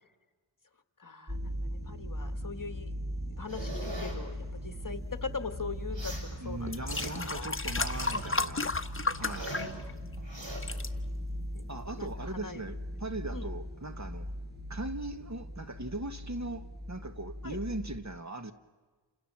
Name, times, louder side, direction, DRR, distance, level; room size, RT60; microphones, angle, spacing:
voice 1, 1.0-2.9 3.3-7.5 9.2-9.9 11.5-11.6 12.0-12.6 13.3-13.5 17.4-17.6, left 4 dB, 45° left, 1.5 m, -42 dB
sound 1, 1.3-18.0, equal, 20° right, 5.2 m, -39 dB
sound 2, 3.5-4.2 5.9-6.3 6.7-7.3 7.7-8.3 8.7-9.8 10.2-10.6, right 1 dB, 70° right, 6.9 m, -41 dB
sound 3, 6.0-6.1 6.7-10.1 10.4-10.9 11.6-11.7, left 3 dB, 25° left, 1.1 m, -33 dB
voice 2, 6.4-8.7 9.2-9.6 11.7-14.3 14.7-18.5, right 2 dB, 35° right, 1.6 m, -39 dB
29.0 x 27.0 x 7.5 m
wide cardioid pair, 70°, 46 cm